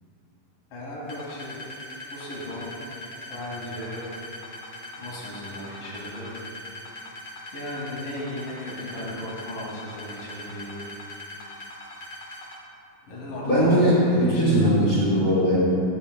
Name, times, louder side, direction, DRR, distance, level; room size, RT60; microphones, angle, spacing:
voice 1, 0.7-1.6 2.1-2.7 3.3-4.0 5.0-6.3 7.5-10.9 13.1-14.7, left 1 dB, 70° left, -6 dB, 3.9 m, -36 dB
sound 1, 1.1-12.6, left 1 dB, 45° left, 1.5 m, -40 dB
voice 2, 13.4-15.6, equal, 30° left, -7 dB, 0.9 m, -20 dB
14.0 x 8.6 x 2.3 m, 2.6 s
omnidirectional pair, 4.0 m